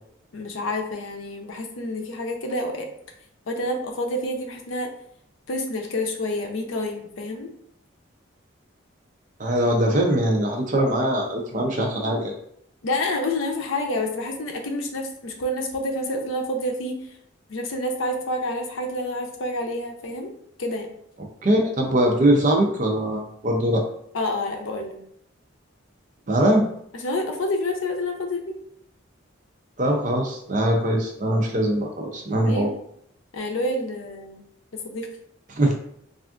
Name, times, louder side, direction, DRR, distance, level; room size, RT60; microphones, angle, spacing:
voice 1, 0.3-2.9 3.5-4.9 5.5-7.5 12.8-17.1 17.5-20.3 20.6-20.9 24.1-25.0 27.0-28.6 32.5-32.7 33.3-34.4 34.7-35.1, left 1 dB, 80° left, 3 dB, 0.6 m, -28 dB
voice 2, 9.4-12.3 21.4-23.8 26.3-26.6 29.8-32.7 35.6-35.7, right 1 dB, 40° right, 2 dB, 0.5 m, -21 dB
3.4 x 2.4 x 2.4 m, 0.70 s
head